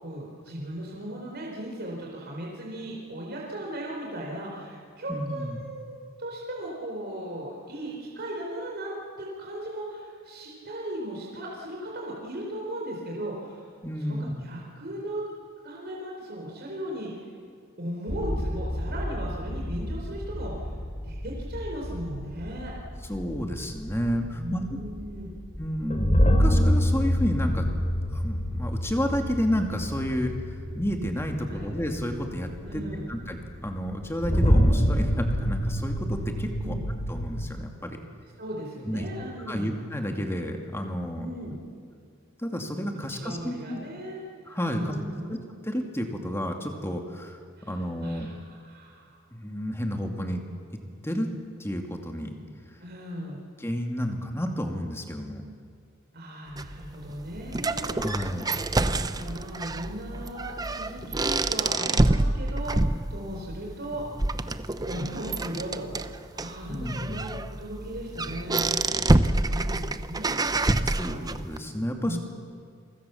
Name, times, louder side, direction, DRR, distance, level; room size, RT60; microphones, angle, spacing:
voice 1, 0.0-13.7 14.0-15.2 15.6-17.3 17.8-20.7 21.0-22.7 24.3-25.3 31.5-31.7 32.6-33.0 36.6-36.8 38.4-39.7 41.2-41.6 43.1-45.3 47.6-49.2 52.8-53.4 56.1-58.4 58.8-64.0 64.8-70.5 70.8-71.2 72.0-72.2, right 1 dB, 50° right, -2 dB, 4.4 m, -37 dB
voice 2, 5.1-5.6 13.8-14.3 23.1-24.8 25.6-27.7 28.1-30.3 30.7-32.8 33.1-36.8 37.1-38.0 38.8-39.1 39.5-41.3 42.4-43.8 44.5-45.0 45.3-45.4 45.6-47.4 47.7-48.3 49.3-50.4 51.0-51.3 51.6-52.4 53.6-55.4 58.0-58.5 66.7-67.2 70.8-72.2, equal, 10° left, 3 dB, 2.4 m, -31 dB
sound 1, 18.1-37.5, equal, 35° left, 3.0 m, -27 dB
sound 2, 56.6-71.6, right 2 dB, 20° right, 0.7 m, -27 dB
29.5 x 24.0 x 7.1 m, 2.2 s
head